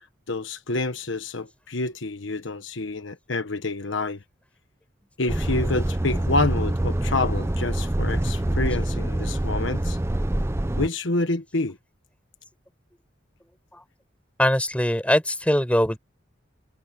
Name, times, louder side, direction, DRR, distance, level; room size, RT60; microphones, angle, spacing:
voice 1, 0.3-4.2 5.2-10.0 10.8-11.8, left 2 dB, 70° left, 1.2 m, -28 dB
Truck, 5.3-10.9, right 1 dB, 15° right, 0.5 m, -25 dB
voice 2, 14.4-16.0, left 1 dB, 5° left, 5.7 m, -22 dB
head